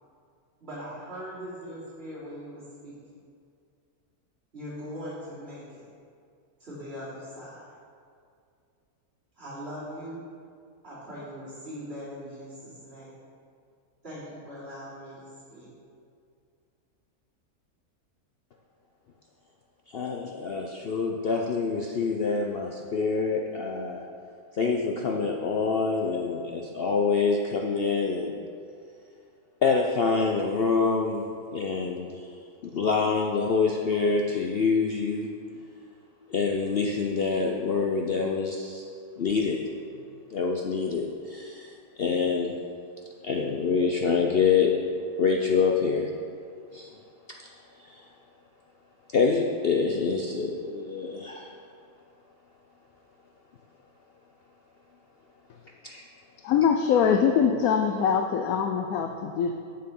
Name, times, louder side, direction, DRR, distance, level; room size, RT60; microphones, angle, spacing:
voice 1, 0.6-3.0 4.5-5.9 6.6-7.7 9.4-10.2 10.8-13.2 14.0-15.7, equal, 40° right, -14 dB, 3.3 m, -40 dB
voice 2, 19.9-24.0 24.6-28.4 29.6-31.3 31.5-32.3 32.6-35.3 36.3-38.8 39.2-39.6 40.3-41.7 42.0-42.6 43.2-44.7 45.2-46.1 46.7-46.9 47.9-48.1 49.1-51.5 55.8-56.0, left 5 dB, 60° left, 1 dB, 0.6 m, -26 dB
voice 3, 56.4-59.5, left 7 dB, 75° left, 4 dB, 1.0 m, -23 dB
8.9 x 7.6 x 5.3 m, 2.3 s
omnidirectional pair, 1.6 m